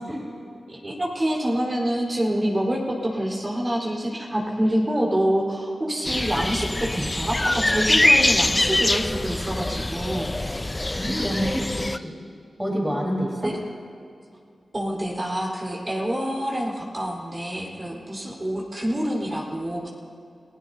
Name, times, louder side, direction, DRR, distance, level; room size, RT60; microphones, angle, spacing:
voice 1, 0.7-10.3 13.4-13.6 14.7-19.9, right 1 dB, 35° right, -4 dB, 4.5 m, -26 dB
sound 1, 6.0-12.0, left 1 dB, 25° left, 0.6 m, -23 dB
voice 2, 10.9-12.1 12.6-13.5, equal, 10° right, -3 dB, 4.4 m, -27 dB
30.0 x 16.5 x 2.9 m, 2.5 s
cardioid pair, 45°, 0 cm